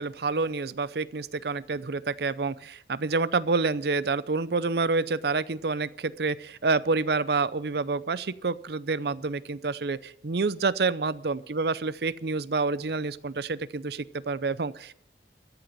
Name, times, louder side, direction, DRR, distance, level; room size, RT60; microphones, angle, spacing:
voice 1, 0.0-14.9, right 4 dB, 65° right, 17 dB, 0.6 m, -28 dB
14.0 x 7.9 x 9.9 m, 0.71 s
head